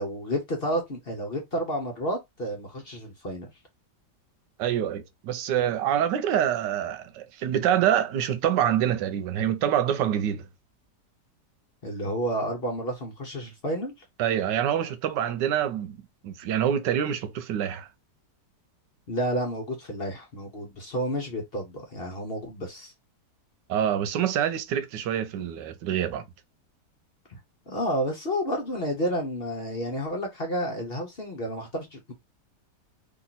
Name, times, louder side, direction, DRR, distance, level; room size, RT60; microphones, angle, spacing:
voice 1, 0.0-3.5 11.8-13.9 19.1-22.9 27.3-27.4 27.7-32.1, equal, 40° left, 1.0 m, -30 dB
voice 2, 4.6-10.5 14.2-16.0 16.2-17.9 23.7-26.2, right 10 dB, 85° right, 1.3 m, -26 dB
3.0 x 2.9 x 4.0 m
omnidirectional pair, 1.9 m